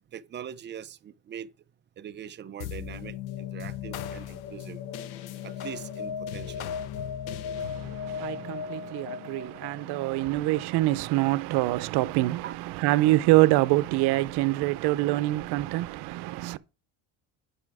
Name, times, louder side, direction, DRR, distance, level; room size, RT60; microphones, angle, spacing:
voice 1, 0.1-1.5 2.0-4.8 5.4-6.7 12.4-12.6, right 9 dB, 30° right, 0.4 m, -42 dB
sound 1, 2.6-11.3, left 8 dB, 65° left, 0.7 m, -37 dB
voice 2, 7.6-16.6, right 18 dB, 75° right, 0.7 m, -25 dB
9.7 x 5.7 x 4.8 m
cardioid pair, 130°, 40 cm